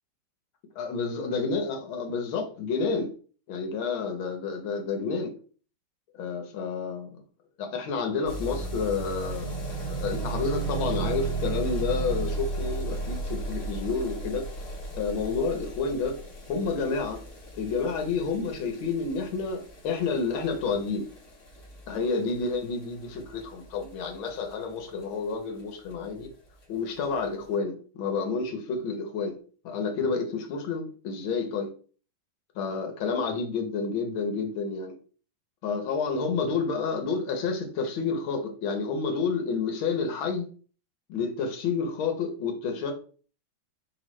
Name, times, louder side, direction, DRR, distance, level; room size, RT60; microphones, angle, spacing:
voice 1, 0.7-3.1 3.5-5.3 6.1-7.2 7.6-9.5 9.9-14.5 14.9-16.2 16.5-17.2 17.6-21.1 21.9-26.3 26.7-29.4 29.6-31.7 32.5-35.0 35.6-40.5 41.1-42.9, left 4 dB, 85° left, 1.6 m, -29 dB
sound 1, 8.3-25.0 25.3-25.4 25.6-25.7 25.9-26.0 26.3-26.4 27.0-27.1, right 3 dB, 45° left, 1.3 m, -35 dB
4.8 x 3.0 x 3.0 m
omnidirectional pair, 2.2 m